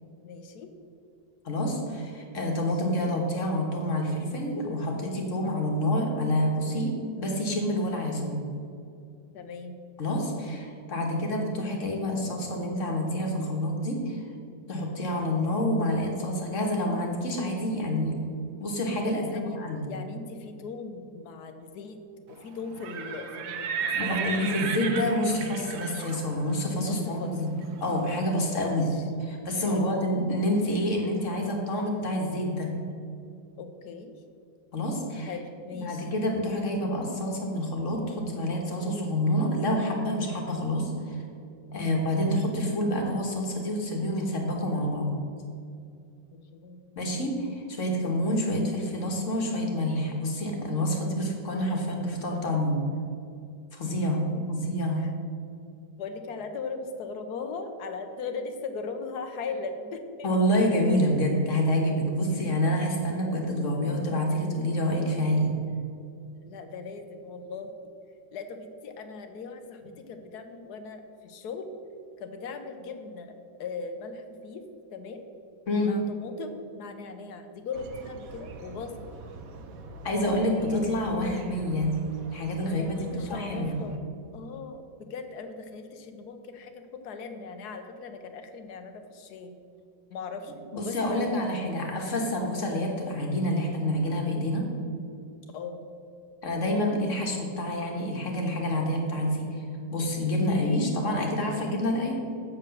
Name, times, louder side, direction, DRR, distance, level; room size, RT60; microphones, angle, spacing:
voice 1, 0.2-0.7 9.3-9.7 19.1-19.6 19.9-22.0 22.3-23.7 24.0-24.1 26.8-27.3 28.3-29.0 29.6-29.9 33.6-34.1 35.2-36.1 41.6-41.8 46.3-46.8 54.3-54.6 55.0-55.1 56.0-60.3 62.3-62.5 66.4-67.9 68.3-71.7 72.2-74.6 74.9-75.3 75.8-79.1 82.6-84.0 84.3-89.5 90.1-91.3 91.7-91.8 95.5-95.8, left 4 dB, 60° left, 7 dB, 1.2 m, -39 dB
voice 2, 1.4-8.4 10.0-14.2 14.7-18.2 18.6-19.8 24.0-27.5 27.8-28.9 29.2-32.7 34.7-35.3 35.8-41.2 41.7-45.1 47.0-52.8 53.7-55.1 60.2-65.5 75.7-75.9 80.0-81.9 82.3-83.8 90.7-94.7 96.4-102.2, left 1 dB, 45° left, 1 dB, 1.6 m, -28 dB
Livestock farm animals working animals, 22.7-28.5, right 6 dB, 80° right, 1.6 m, -35 dB
sound 1, 77.7-84.0, right 3 dB, 60° right, 1.0 m, -44 dB
7.6 x 7.4 x 6.4 m, 2.5 s
omnidirectional pair, 2.1 m